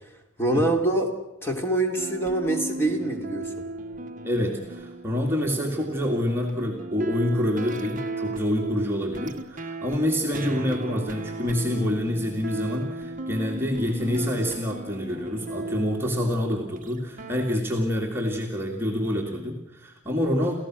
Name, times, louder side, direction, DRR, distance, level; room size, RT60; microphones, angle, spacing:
voice 1, 0.4-1.1 1.4-3.6, right 2 dB, 10° left, 3 dB, 3.0 m, -25 dB
sound 1, 2.0-17.6, right 2 dB, 40° right, 1.1 m, -36 dB
voice 2, 4.2-20.6, left 1 dB, 10° right, -1 dB, 2.2 m, -27 dB
29.0 x 15.0 x 6.2 m, 0.91 s
head